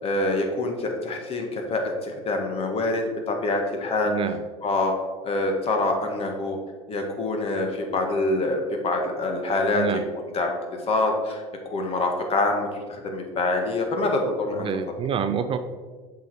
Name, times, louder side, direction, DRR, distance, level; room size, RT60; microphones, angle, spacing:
voice 1, 0.0-4.1 4.6-4.9 5.2-6.6 6.9-9.8 10.3-10.5 10.9-11.4 11.7-14.7, left 2 dB, 40° left, 3 dB, 1.6 m, -25 dB
voice 2, 4.1-4.4 9.7-10.1 14.5-15.6, right 7 dB, 35° right, 10 dB, 0.5 m, -27 dB
7.8 x 5.0 x 4.7 m, 1.4 s
hypercardioid pair, 90°, 15 cm